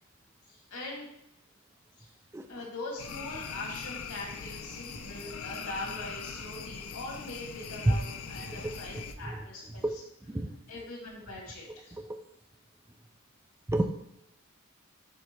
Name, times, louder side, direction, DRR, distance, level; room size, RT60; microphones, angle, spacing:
voice 1, 0.5-1.1 2.0-2.1 2.5-9.8 10.7-12.0, left 2 dB, 90° left, -3 dB, 2.3 m, -42 dB
sound 1, 3.0-9.1, left 6 dB, 75° left, 0.6 m, -41 dB
voice 2, 8.6-9.4 9.8-9.9 10.3-10.6 12.0-12.2 13.7-13.8, right 1 dB, 10° right, 5 dB, 0.4 m, -30 dB
9.9 x 3.4 x 3.2 m, 0.77 s
head